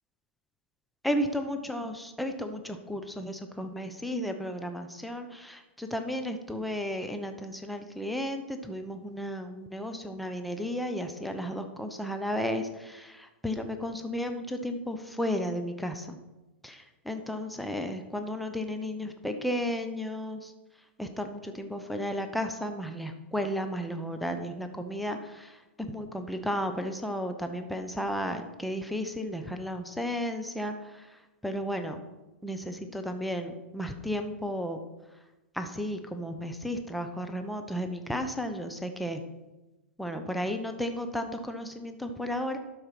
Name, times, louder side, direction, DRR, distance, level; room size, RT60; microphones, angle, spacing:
voice 1, 1.0-16.2 16.6-20.5 21.0-31.1 31.4-32.0 32.4-34.8 35.5-39.2 40.0-42.6, equal, ahead, 5 dB, 0.8 m, -33 dB
12.0 x 4.7 x 5.9 m, 1.0 s
hypercardioid pair, 130°, 7 cm